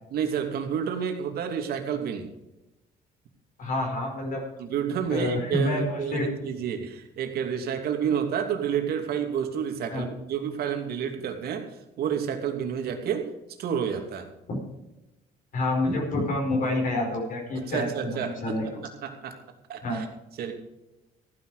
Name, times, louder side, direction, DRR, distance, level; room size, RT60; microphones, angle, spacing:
voice 1, 0.1-2.2 4.6-11.6 12.0-13.2 13.6-14.3 17.5-18.7 19.0-19.3 19.7-20.1 20.4-20.5, right 8 dB, 65° right, 4 dB, 2.7 m, -29 dB
voice 2, 3.6-4.4 5.1-6.3 9.9-10.0 14.5-14.6 15.5-18.8 19.8-20.0, left 2 dB, 55° left, 0 dB, 5.0 m, -28 dB
15.0 x 10.5 x 5.0 m, 0.96 s
cardioid pair, 110°, 17 cm